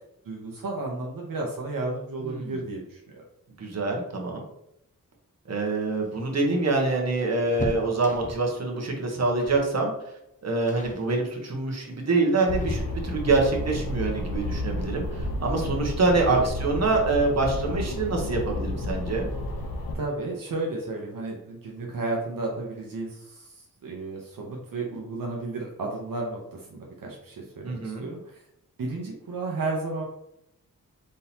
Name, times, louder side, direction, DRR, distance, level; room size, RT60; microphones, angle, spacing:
voice 1, 0.2-3.2 16.3-16.5 19.9-28.4 28.8-30.0, right 2 dB, 70° right, -1 dB, 0.9 m, -33 dB
voice 2, 2.2-2.5 3.6-4.4 5.5-9.9 10.4-19.3 27.6-28.1, right 3 dB, 50° right, 0 dB, 1.1 m, -25 dB
sound 1, 5.9-8.6 9.4-9.7 10.0-10.3 10.7-11.1 11.9-13.4 15.1-15.2 15.6-15.7 16.8-17.3 17.6-17.7 18.0-18.2, left 2 dB, 20° left, 0.6 m, -37 dB
sound 2, 12.5-20.0, left 1 dB, 90° left, 0.8 m, -31 dB
4.2 x 3.8 x 2.8 m, 0.80 s
wide cardioid pair, 80°, 34 cm